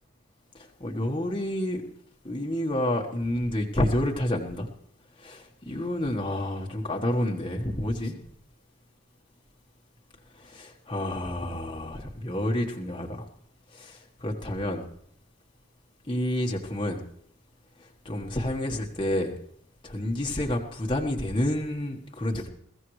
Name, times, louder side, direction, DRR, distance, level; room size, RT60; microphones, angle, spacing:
voice 1, 0.5-1.8 2.2-4.7 5.2-8.2 10.3-13.3 13.7-14.8 16.1-17.0 17.8-19.3 19.8-22.5, left 1 dB, 20° left, 0 dB, 1.4 m, -29 dB
22.0 x 15.0 x 3.2 m, 0.69 s
head